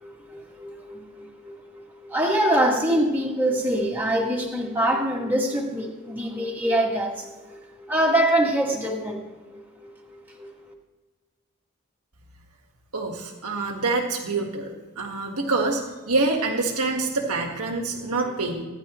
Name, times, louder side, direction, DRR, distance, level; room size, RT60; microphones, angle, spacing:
voice 1, 0.3-1.2 2.1-7.3 7.9-9.2 10.4-10.5, right 1 dB, 10° right, -3 dB, 1.9 m, -24 dB
voice 2, 12.9-18.7, right 3 dB, 90° right, 1 dB, 1.6 m, -26 dB
26.5 x 10.5 x 3.1 m, 1.3 s
head